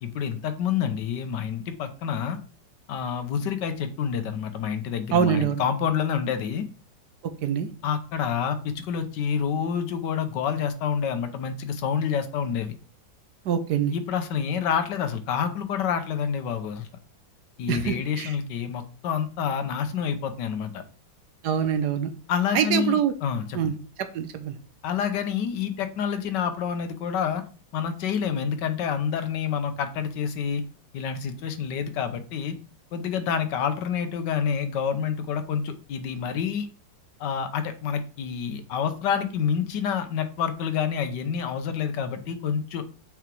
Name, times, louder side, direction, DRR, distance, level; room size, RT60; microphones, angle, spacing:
voice 1, 0.0-2.4 2.9-6.7 7.8-12.7 13.9-16.9 17.6-20.8 22.3-23.7 24.8-27.4 27.7-30.6 30.9-32.5 32.9-36.7 37.2-42.8, left 7 dB, 75° left, 9 dB, 1.4 m, -28 dB
voice 2, 5.1-5.6 7.4-7.7 13.5-13.9 17.7-18.3 21.4-22.1 22.5-23.1 23.5-23.7 24.0-24.6, right 8 dB, 70° right, 9 dB, 1.2 m, -24 dB
5.6 x 4.7 x 4.5 m, 0.37 s
omnidirectional pair, 2.0 m